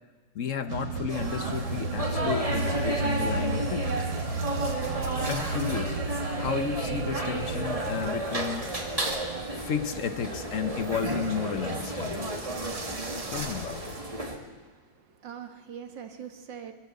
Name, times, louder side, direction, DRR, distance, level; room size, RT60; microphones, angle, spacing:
voice 1, 0.3-4.0 5.3-8.7 9.6-12.3 13.3-14.0, left 7 dB, 60° left, 11 dB, 0.8 m, -33 dB
sound 1, 0.7-8.1, right 3 dB, 90° right, 2.1 m, -33 dB
sound 2, 1.1-14.4, right 1 dB, 15° right, 2.0 m, -32 dB
sound 3, 1.5-14.0, right 2 dB, 40° right, 2.7 m, -45 dB
voice 2, 14.6-16.7, right 8 dB, 60° right, 6 dB, 2.1 m, -43 dB
24.5 x 13.0 x 8.2 m, 1.5 s
omnidirectional pair, 2.3 m